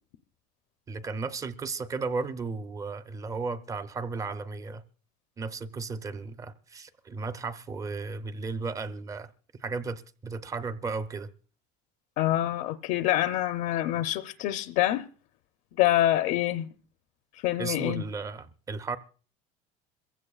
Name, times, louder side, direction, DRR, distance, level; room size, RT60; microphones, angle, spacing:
voice 1, 0.9-4.8 5.4-9.3 9.6-11.3 17.6-19.0, right 4 dB, 20° right, 0.6 m, -34 dB
voice 2, 12.2-15.0 15.8-16.7 17.4-18.0, left 14 dB, 70° left, 0.6 m, -26 dB
26.5 x 15.5 x 2.4 m
cardioid pair, 150°, 17 cm